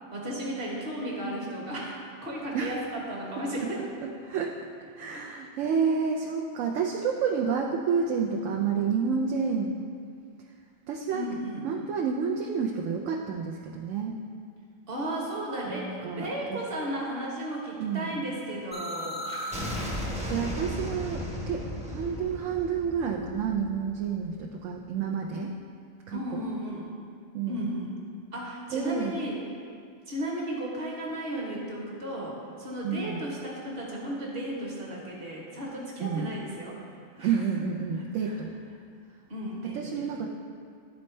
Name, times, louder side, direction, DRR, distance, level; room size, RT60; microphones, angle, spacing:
voice 1, 0.1-1.9 2.2-3.9 5.1-5.2 11.1-11.7 14.9-19.7 26.1-26.9 27.5-27.9 28.3-29.4 30.1-36.8 37.1-37.7 38.0-38.4 39.3-40.1, right 1 dB, 45° right, -3 dB, 1.4 m, -35 dB
voice 2, 5.0-9.7 10.9-11.2 11.6-14.2 15.7-16.6 17.8-18.2 20.3-25.5 26.1-26.4 27.3-27.6 28.7-29.2 32.8-33.2 36.0-36.3 37.2-38.5 39.7-40.3, right 6 dB, 75° right, 0 dB, 0.9 m, -29 dB
sound 1, 18.7-24.4, equal, 5° right, 0.6 m, -35 dB
11.0 x 4.2 x 3.2 m, 2.2 s
omnidirectional pair, 1.4 m